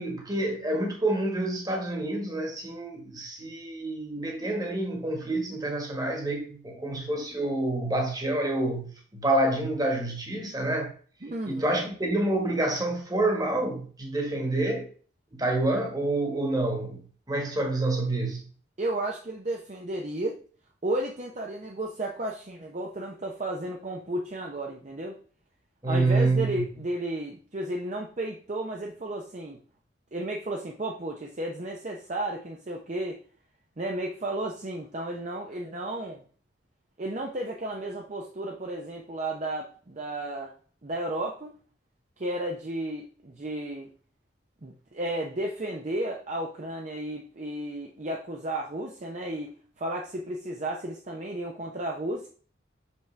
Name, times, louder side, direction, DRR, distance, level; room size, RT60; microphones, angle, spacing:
voice 1, 0.0-10.9 11.5-14.9 15.3-17.0 17.3-18.4 25.8-26.6, right 2 dB, 20° right, 1.5 m, -28 dB
voice 2, 11.2-11.9 18.8-20.4 20.8-25.2 25.9-29.6 30.1-33.2 33.8-36.2 37.0-40.5 40.8-41.5 42.2-43.9 44.6-52.3, right 1 dB, 40° right, 0.7 m, -33 dB
6.0 x 5.9 x 3.3 m
head